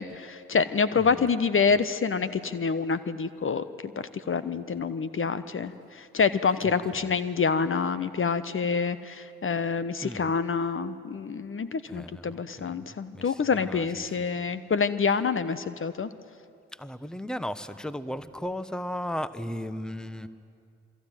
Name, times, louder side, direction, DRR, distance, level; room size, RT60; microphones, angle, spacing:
voice 1, 0.0-16.1, left 5 dB, 40° left, 14 dB, 1.2 m, -27 dB
voice 2, 11.9-12.7 13.1-14.5 16.7-20.3, equal, ahead, 14 dB, 1.2 m, -36 dB
28.0 x 22.5 x 9.2 m, 2.4 s
hypercardioid pair, 45°, 32 cm